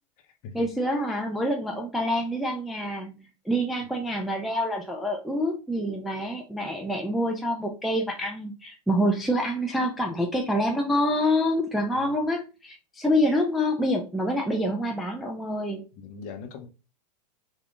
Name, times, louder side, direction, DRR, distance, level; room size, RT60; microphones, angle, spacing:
voice 1, 0.5-15.8, equal, ahead, 0.3 m, -27 dB
voice 2, 16.0-16.7, left 5 dB, 40° left, 0.7 m, -40 dB
3.4 x 2.3 x 2.4 m
hypercardioid pair, 105°, 21 cm